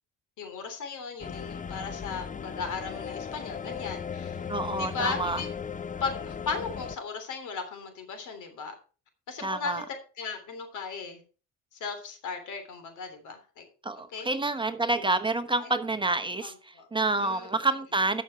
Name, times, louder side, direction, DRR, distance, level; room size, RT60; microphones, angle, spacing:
voice 1, 0.4-4.5 4.8-5.5 6.0-8.7 9.3-9.8 10.2-11.2 11.8-13.7 14.1-14.3 15.0-15.1 15.6-15.7 16.4-16.9 17.2-17.5, left 5 dB, 80° left, 3.2 m, -36 dB
sound 1, 1.2-7.0, left 7 dB, 25° left, 0.6 m, -37 dB
voice 2, 4.5-5.4 9.4-9.8 13.8-18.2, right 2 dB, 15° right, 1.1 m, -28 dB
12.5 x 6.3 x 4.6 m
cardioid pair, 90°, 30 cm